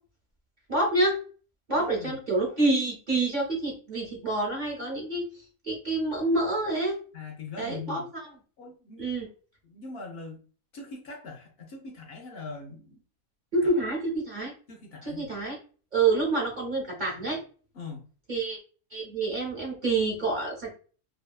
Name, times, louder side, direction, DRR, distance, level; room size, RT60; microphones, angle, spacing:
voice 1, 0.7-1.2 1.7-5.3 5.6-7.0 7.6-8.3 9.0-9.3 13.5-14.5 15.0-15.6 15.9-17.4 18.3-18.6 18.9-20.7, right 2 dB, 45° right, -1 dB, 0.6 m, -27 dB
voice 2, 1.7-2.2 7.1-8.1 8.6-9.2 9.6-10.4 10.7-13.0 13.6-13.7 14.7-15.3 17.7-18.0, left 4 dB, 65° left, 2 dB, 0.6 m, -41 dB
2.7 x 2.2 x 2.2 m, 0.39 s
omnidirectional pair, 1.5 m